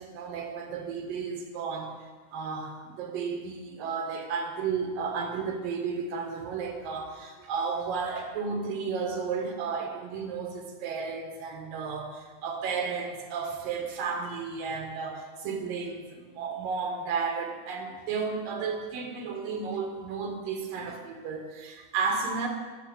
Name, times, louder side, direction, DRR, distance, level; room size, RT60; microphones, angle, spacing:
voice 1, 0.0-22.5, right 5 dB, 90° right, 3 dB, 3.1 m, -33 dB
12.0 x 7.0 x 6.9 m, 1.4 s
omnidirectional pair, 3.8 m